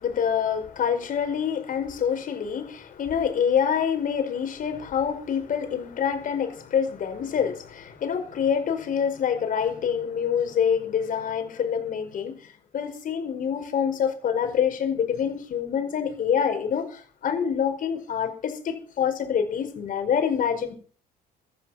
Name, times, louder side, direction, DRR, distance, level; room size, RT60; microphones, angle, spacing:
voice 1, 0.0-12.4 12.7-20.7, left 7 dB, 55° left, 5.3 m, -26 dB
15.5 x 13.0 x 5.9 m
cardioid pair, 110°, 17 cm